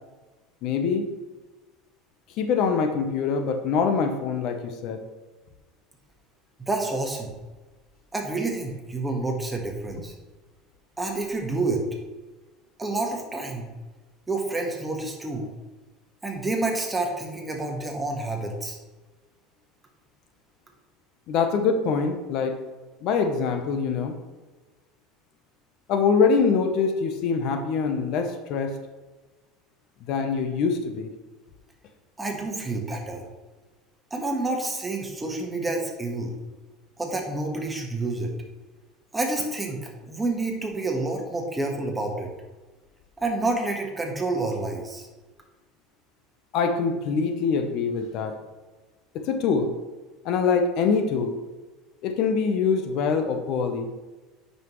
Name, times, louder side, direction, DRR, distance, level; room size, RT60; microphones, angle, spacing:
voice 1, 0.6-1.1 2.4-5.0 21.3-22.6 23.0-24.2 25.9-28.8 30.1-31.1 46.5-48.4 49.1-49.7 50.2-51.4 52.0-53.9, left 5 dB, 60° left, 7 dB, 0.8 m, -24 dB
voice 2, 6.7-7.3 8.1-10.1 11.0-11.8 12.8-13.7 14.3-15.5 16.2-18.8 32.2-33.3 34.1-36.3 37.0-38.3 39.1-42.3 43.2-45.1, right 2 dB, 15° right, 1 dB, 1.4 m, -28 dB
9.2 x 5.5 x 3.1 m, 1.2 s
supercardioid pair, 110°, 0 cm